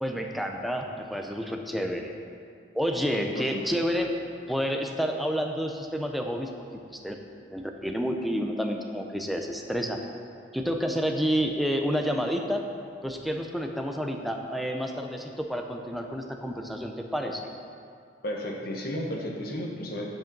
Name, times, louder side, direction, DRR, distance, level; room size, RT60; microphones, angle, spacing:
voice 1, 0.0-2.1 2.7-4.1 4.5-6.5 6.9-7.2 7.5-10.0 10.5-12.6 13.0-17.5, equal, ahead, 3 dB, 0.5 m, -29 dB
voice 2, 3.2-3.6 18.2-20.1, equal, 50° left, 0 dB, 1.1 m, -33 dB
9.9 x 5.3 x 5.2 m, 2.4 s
head